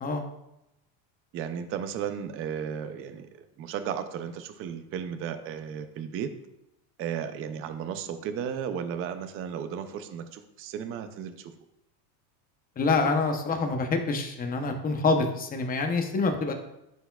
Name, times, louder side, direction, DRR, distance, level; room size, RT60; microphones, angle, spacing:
voice 1, 1.3-3.3 3.6-6.3 7.0-11.5, right 8 dB, 30° right, 8 dB, 0.4 m, -34 dB
voice 2, 12.8-16.5, left 3 dB, 20° left, 4 dB, 0.7 m, -26 dB
11.0 x 4.6 x 2.3 m, 0.87 s
supercardioid pair, 135°, 48 cm